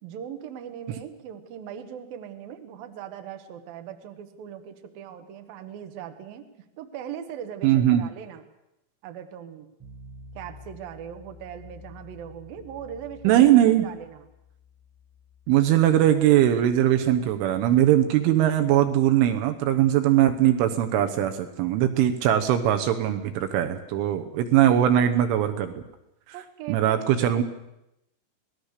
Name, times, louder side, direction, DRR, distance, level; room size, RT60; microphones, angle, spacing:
voice 1, 0.0-8.4 9.0-9.7 10.3-13.6 13.8-14.2 26.3-27.4, right 9 dB, 60° right, 6 dB, 2.7 m, -40 dB
voice 2, 7.6-8.0 13.2-13.9 15.5-25.8 26.7-27.4, right 11 dB, 75° right, 6 dB, 3.4 m, -20 dB
sound 1, 9.8-21.0, left 3 dB, 5° right, 5.9 m, -51 dB
26.5 x 19.0 x 6.7 m, 0.87 s
omnidirectional pair, 6.0 m